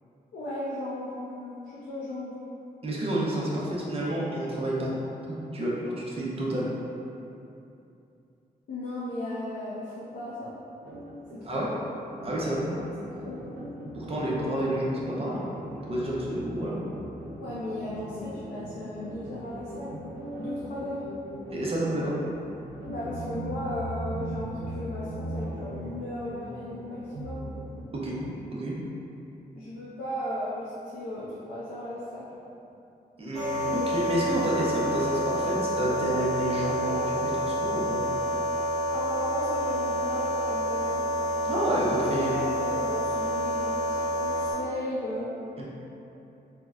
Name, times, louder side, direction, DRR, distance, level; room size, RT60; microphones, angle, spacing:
voice 1, 0.3-2.4 8.7-10.6 11.3-11.7 12.8-12.9 13.2-13.4 17.4-21.0 22.9-27.5 29.5-32.3 38.9-41.1 41.9-45.3, left 1 dB, 80° left, -8 dB, 0.5 m, -36 dB
voice 2, 2.8-4.9 5.3-6.7 11.4-11.7 12.2-12.7 13.9-15.4 15.7-16.7 21.5-22.1 28.0-28.2 28.5-28.7 33.2-38.0 41.4-42.3 45.6-45.7, right 1 dB, 40° right, -6 dB, 0.5 m, -29 dB
sound 1, 10.8-28.4, right 1 dB, 85° right, 0.5 m, -39 dB
sound 2, 33.3-44.5, equal, 20° left, 0.8 m, -28 dB
4.2 x 2.0 x 2.3 m, 2.8 s
wide cardioid pair, 135°, 16 cm